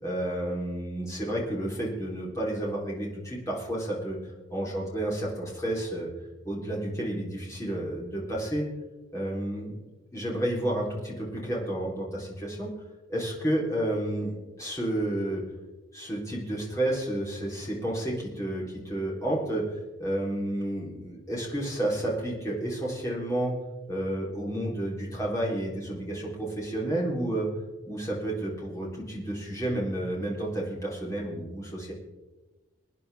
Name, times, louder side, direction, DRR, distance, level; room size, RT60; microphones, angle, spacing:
voice 1, 0.0-4.2 4.5-6.1 6.4-8.6 9.1-9.8 10.1-12.7 13.1-15.4 15.9-19.6 20.0-23.6 23.9-27.5 27.9-31.9, right 1 dB, 15° left, -4 dB, 3.4 m, -31 dB
23.5 x 9.7 x 3.4 m, 1.2 s
head